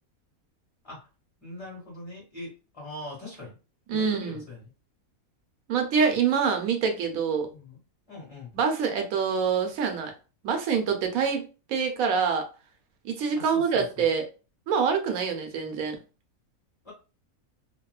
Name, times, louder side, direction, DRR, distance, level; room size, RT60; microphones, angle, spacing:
voice 1, 1.4-3.5 3.9-4.6 7.5-7.8 8.1-8.6 13.4-14.1 16.8-16.9, left 2 dB, 25° left, -5 dB, 1.5 m, -42 dB
voice 2, 3.9-4.4 5.7-7.5 8.5-10.1 10.4-12.5 13.0-14.2 14.7-16.0, right 6 dB, 75° right, 4 dB, 1.0 m, -25 dB
2.9 x 2.1 x 2.3 m, 0.33 s
omnidirectional pair, 1.5 m